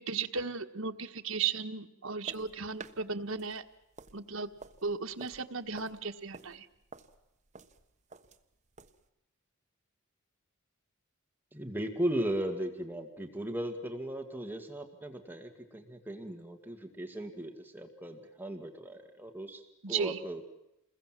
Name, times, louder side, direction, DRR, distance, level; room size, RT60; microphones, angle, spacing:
voice 1, 0.0-3.6 4.1-4.5 4.8-6.7 19.8-20.2, right 5 dB, 75° right, 7 dB, 1.5 m, -35 dB
sound 1, 2.2-9.1, right 4 dB, 35° right, 1.2 m, -52 dB
voice 2, 11.5-19.6 19.9-20.4, right 1 dB, 10° right, 4 dB, 1.9 m, -37 dB
29.0 x 21.5 x 7.6 m, 0.91 s
head